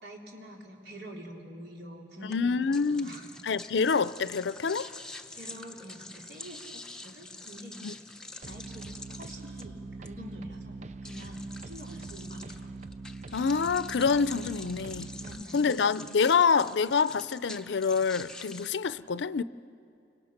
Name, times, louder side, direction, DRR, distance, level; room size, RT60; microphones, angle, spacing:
voice 1, 0.0-2.6 2.9-3.3 5.3-7.8 8.5-12.7 14.6-14.9 15.2-15.8, equal, 70° right, 4.0 m, -46 dB
voice 2, 2.3-3.2 3.4-4.9 7.8-7.9 13.3-15.1 15.5-19.4, left 5 dB, 90° left, 0.5 m, -26 dB
sound 1, 2.3-18.7, left 2 dB, 5° left, 0.8 m, -47 dB
sound 2, 8.4-15.4, right 3 dB, 40° right, 0.5 m, -43 dB
29.5 x 25.5 x 5.9 m
head